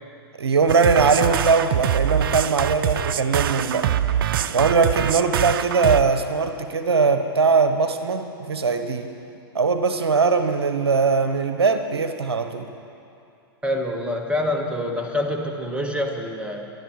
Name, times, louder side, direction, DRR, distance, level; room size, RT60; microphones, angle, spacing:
voice 1, 0.4-3.9 4.5-9.1 9.5-12.7, right 4 dB, 80° right, 8 dB, 1.0 m, -20 dB
sound 1, 0.7-6.0, right 10 dB, 60° right, 0.6 m, -24 dB
voice 2, 13.6-16.7, left 1 dB, 10° right, 2 dB, 1.7 m, -26 dB
25.0 x 11.0 x 4.8 m, 2.6 s
hypercardioid pair, 105°, 13 cm